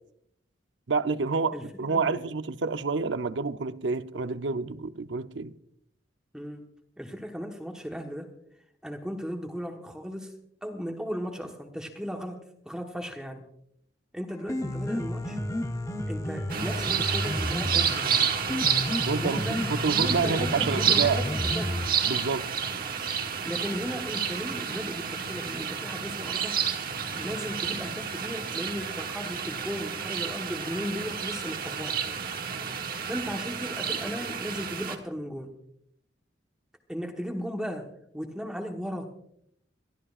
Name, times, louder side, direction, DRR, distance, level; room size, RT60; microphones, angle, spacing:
voice 1, 0.9-5.5 19.1-21.2 22.1-22.5, right 4 dB, 75° right, 0.7 m, -28 dB
voice 2, 1.9-2.2 6.3-6.7 7.0-8.3 8.8-10.3 10.6-12.4 12.6-13.4 14.1-15.4 16.1-18.3 19.2-21.8 23.4-26.6 27.1-32.0 33.1-35.5 36.9-37.9 38.1-39.1, equal, 5° right, 1.2 m, -36 dB
Piano, 14.3-22.3, left 1 dB, 15° left, 0.7 m, -32 dB
sound 1, 16.5-35.0, right 7 dB, 50° right, 1.3 m, -30 dB
24.0 x 14.0 x 2.5 m
head